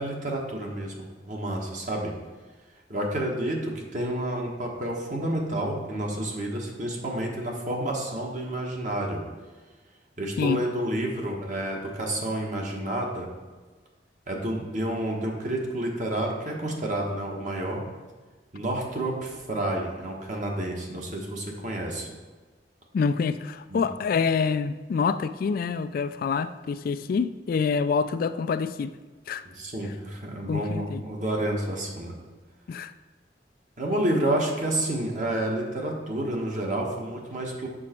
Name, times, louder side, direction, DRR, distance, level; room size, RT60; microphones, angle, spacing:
voice 1, 0.0-2.1 2.9-9.2 10.2-13.3 14.3-17.8 18.5-22.1 23.7-23.8 29.4-32.2 33.8-37.7, right 1 dB, 45° right, -1 dB, 1.4 m, -29 dB
voice 2, 22.9-28.9 29.3-29.4 30.5-31.0 32.7-32.9, left 5 dB, 55° left, 12 dB, 0.3 m, -26 dB
7.5 x 6.2 x 4.4 m, 1.3 s
head